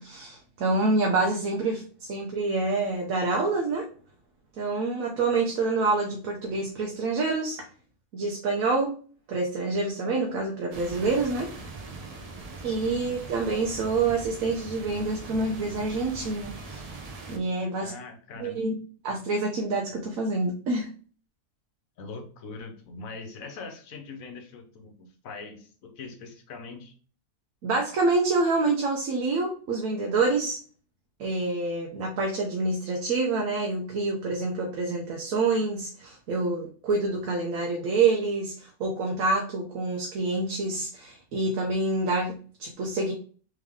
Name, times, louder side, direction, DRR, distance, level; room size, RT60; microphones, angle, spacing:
voice 1, 0.0-3.9 4.6-7.6 8.1-8.9 9.3-11.5 12.6-16.9 17.3-17.9 18.4-18.7 19.0-20.9 27.6-30.6 31.2-43.1, right 3 dB, 70° right, 1 dB, 1.1 m, -27 dB
sound 1, 10.7-17.4, right 3 dB, 45° right, 0.5 m, -41 dB
voice 2, 17.8-18.7 22.0-26.9, left 4 dB, 70° left, 5 dB, 1.3 m, -42 dB
3.5 x 3.5 x 3.5 m, 0.41 s
omnidirectional pair, 1.5 m